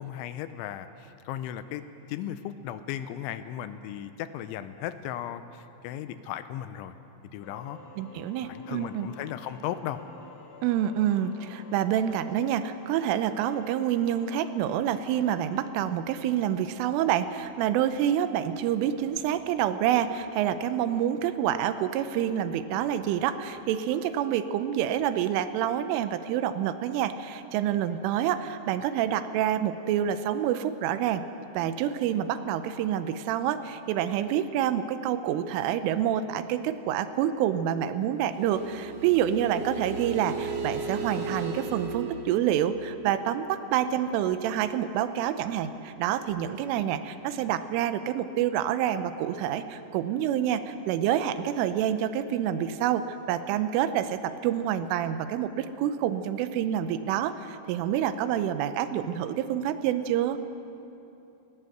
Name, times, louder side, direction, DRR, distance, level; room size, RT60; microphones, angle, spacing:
voice 1, 0.0-1.8 2.1-6.9 7.3-7.8 8.2-10.0, left 11 dB, 80° left, 11 dB, 3.0 m, -36 dB
sound 1, 7.4-15.7, left 2 dB, 60° left, 3.9 m, -50 dB
voice 2, 8.0-9.1 10.6-31.2 31.6-60.4, right 10 dB, 85° right, 11 dB, 3.3 m, -27 dB
sound 2, 38.3-43.8, right 4 dB, 55° right, 1.8 m, -36 dB
20.0 x 18.5 x 8.0 m, 2.9 s
omnidirectional pair, 5.6 m